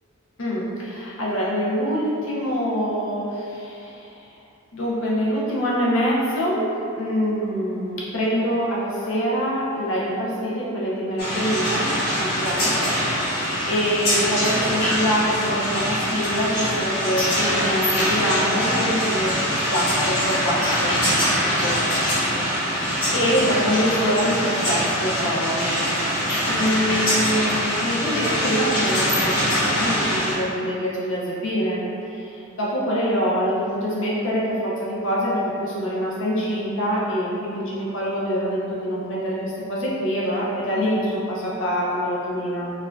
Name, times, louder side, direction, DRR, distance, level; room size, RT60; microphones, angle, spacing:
voice 1, 0.4-4.2 4.7-11.9 12.2-12.8 13.2-19.3 19.7-21.0 21.3-22.8 23.1-25.7 26.5-42.7, equal, 70° left, -6 dB, 0.7 m, -25 dB
sound 1, 11.2-30.3, equal, 50° left, 1.3 m, -23 dB
4.5 x 2.6 x 2.3 m, 2.7 s
head